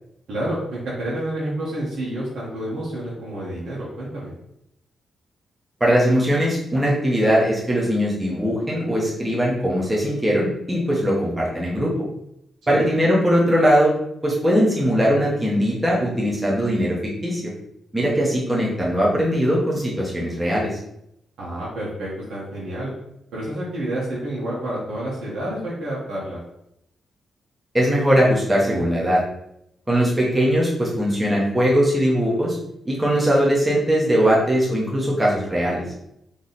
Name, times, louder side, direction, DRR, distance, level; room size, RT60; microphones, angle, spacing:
voice 1, 0.3-4.3 12.7-12.9 21.4-22.9 23.3-26.4, right 1 dB, 75° right, -7 dB, 1.4 m, -29 dB
voice 2, 5.8-11.9 12.7-13.9 14.2-17.4 17.9-20.8 27.7-29.2 29.9-32.6 32.8-35.8, equal, 15° right, -5 dB, 1.2 m, -20 dB
3.6 x 3.1 x 4.2 m, 0.78 s
cardioid pair, 100°, 0 cm